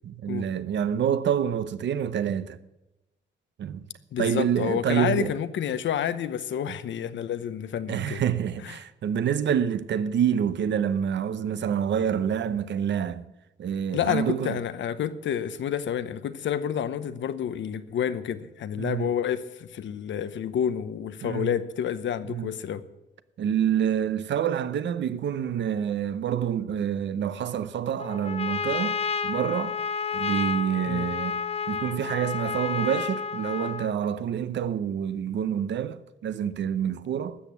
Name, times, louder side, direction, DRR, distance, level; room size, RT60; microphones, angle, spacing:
voice 1, 0.0-2.6 3.6-3.8 4.2-5.3 7.9-13.3 13.6-14.6 18.8-19.1 21.2-21.5 22.2-22.5 23.4-29.0 29.2-29.8 30.1-37.4, right 9 dB, 70° right, 0.8 m, -27 dB
voice 2, 4.1-8.2 8.6-8.8 13.9-22.8 30.9-31.1, left 9 dB, 80° left, 0.9 m, -29 dB
Trumpet, 28.0-34.0, left 6 dB, 30° left, 0.5 m, -30 dB
13.0 x 8.3 x 8.6 m
wide cardioid pair, 155°, 19 cm